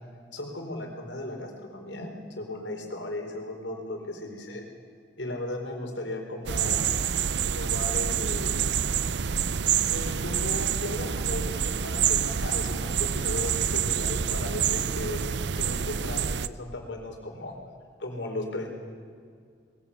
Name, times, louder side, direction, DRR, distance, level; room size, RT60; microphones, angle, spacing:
voice 1, 0.3-4.6 5.2-6.8 7.5-8.6 9.9-17.5 18.0-18.7, left 1 dB, 90° left, 2 dB, 4.1 m, -36 dB
sound 1, 6.5-16.5, right 8 dB, 75° right, 0.6 m, -27 dB
22.0 x 16.0 x 8.4 m, 2.2 s
head